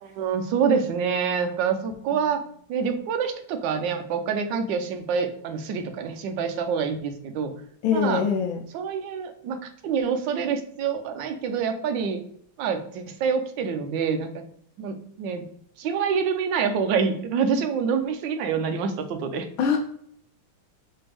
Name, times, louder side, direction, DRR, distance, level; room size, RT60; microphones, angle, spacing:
voice 1, 0.0-2.4 2.7-7.5 7.9-8.2 8.7-12.2 12.6-14.3 14.8-15.5 15.8-19.5, right 6 dB, 70° right, 7 dB, 1.2 m, -26 dB
voice 2, 7.8-8.6 19.6-19.8, left 6 dB, 80° left, 3 dB, 1.4 m, -23 dB
4.3 x 3.4 x 3.3 m, 0.65 s
omnidirectional pair, 2.3 m